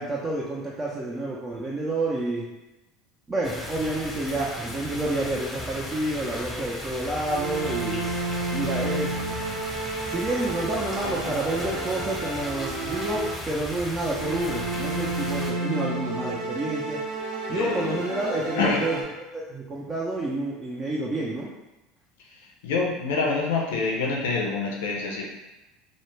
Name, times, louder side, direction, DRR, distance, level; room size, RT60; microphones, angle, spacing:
voice 1, 0.0-2.4 3.3-8.0 8.5-9.1 10.1-17.0 17.5-19.0 19.3-21.5, right 2 dB, 25° right, -5 dB, 0.5 m, -29 dB
sound 1, 3.4-15.5, left 1 dB, 15° left, 0.8 m, -36 dB
sound 2, 7.2-13.7 14.1-19.0, right 2 dB, 85° right, 0.8 m, -31 dB
voice 2, 17.5-17.9 18.5-18.8 22.4-25.3, left 4 dB, 75° left, -1 dB, 0.5 m, -26 dB
2.2 x 2.1 x 3.1 m, 1.0 s
hypercardioid pair, 80°, 0 cm